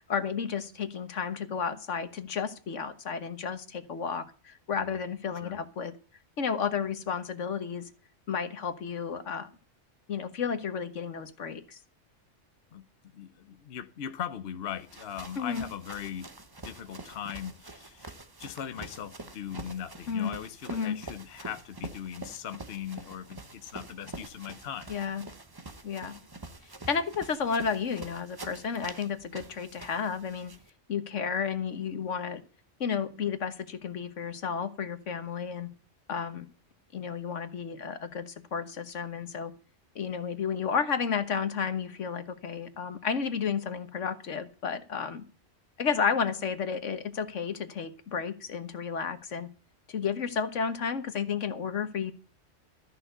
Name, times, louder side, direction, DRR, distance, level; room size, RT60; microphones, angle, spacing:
voice 1, 0.0-6.0 6.4-7.9 8.3-9.5 10.1-11.8 15.4-15.6 20.1-20.4 20.7-21.0 24.9-25.3 25.8-26.2 26.9-30.5 30.9-32.4 32.8-35.7 36.1-36.5 36.9-39.5 39.9-45.2 45.8-49.5 49.9-52.1, left 6 dB, 75° left, 1.6 m, -32 dB
voice 2, 13.1-16.3 16.6-24.9, left 9 dB, 60° left, 1.0 m, -39 dB
sound 1, 14.7-30.7, right 2 dB, 20° right, 0.9 m, -46 dB
14.0 x 6.1 x 7.9 m
omnidirectional pair, 1.3 m